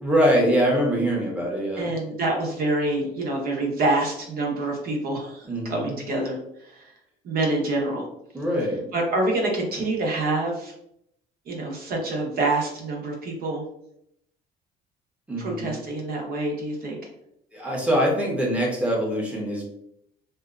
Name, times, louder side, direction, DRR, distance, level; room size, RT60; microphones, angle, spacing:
voice 1, 0.0-1.9 5.4-6.0 8.3-8.9 15.3-15.8 17.5-19.6, equal, 5° right, -2 dB, 0.8 m, -23 dB
voice 2, 1.8-6.9 7.2-8.1 8.9-10.7 11.5-13.6 15.4-17.0, right 2 dB, 60° right, 0 dB, 0.9 m, -26 dB
2.7 x 2.2 x 2.3 m, 0.75 s
cardioid pair, 110°, 17 cm